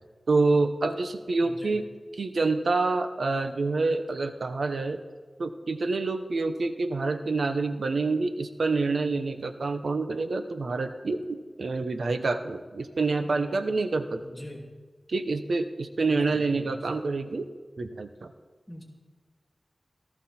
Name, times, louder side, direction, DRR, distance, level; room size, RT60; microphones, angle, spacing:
voice 1, 0.3-1.8 2.2-5.0 5.4-14.2 15.1-17.5 17.8-18.3, right 3 dB, 80° right, 8 dB, 0.9 m, -27 dB
voice 2, 1.4-1.8 13.2-13.6 14.2-14.6 16.1-16.8 18.7-18.8, left 1 dB, ahead, -3 dB, 2.7 m, -43 dB
18.0 x 14.0 x 4.4 m, 1.4 s
wide cardioid pair, 80°, 0 cm